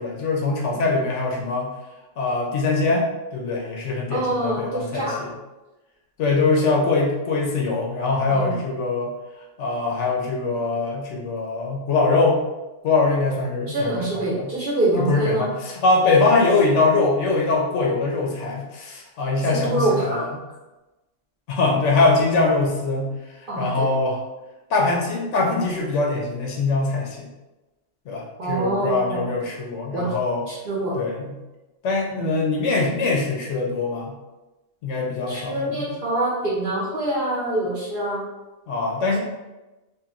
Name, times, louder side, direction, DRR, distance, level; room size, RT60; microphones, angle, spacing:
voice 1, 0.0-1.7 2.2-5.3 6.2-9.1 9.6-12.4 12.8-14.5 15.0-20.3 21.5-24.2 24.7-27.3 28.1-30.4 30.9-31.3 31.8-34.1 34.8-35.9 38.7-39.2, left 3 dB, 70° left, -1 dB, 0.9 m, -22 dB
voice 2, 4.1-5.2 8.3-8.6 13.7-15.5 19.4-20.2 23.5-23.9 28.4-29.3 29.9-30.1 30.5-31.0 32.1-32.3 35.3-38.2, right 2 dB, 50° right, -6 dB, 0.8 m, -25 dB
2.9 x 2.5 x 2.4 m, 1.1 s
omnidirectional pair, 1.4 m